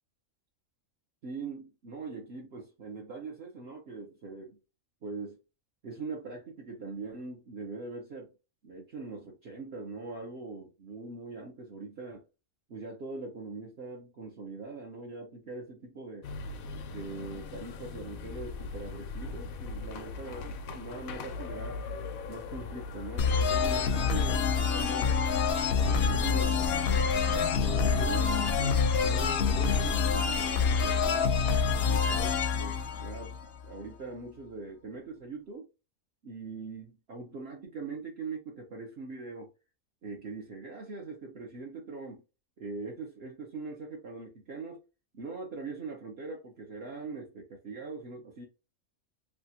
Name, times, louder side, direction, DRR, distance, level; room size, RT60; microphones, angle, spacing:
voice 1, 1.2-4.6 5.0-5.4 5.8-8.3 8.6-12.2 12.7-16.3 16.9-21.8 22.3-25.2 25.8-31.3 31.8-35.7 36.2-39.5 40.0-42.2 42.6-44.8 45.1-48.5, right 3 dB, 55° right, 0.9 m, -42 dB
sound 1, 16.2-24.1, left 4 dB, 90° left, 1.0 m, -40 dB
sound 2, 23.2-33.8, left 5 dB, 65° left, 0.7 m, -27 dB
3.4 x 2.3 x 2.7 m
omnidirectional pair, 1.4 m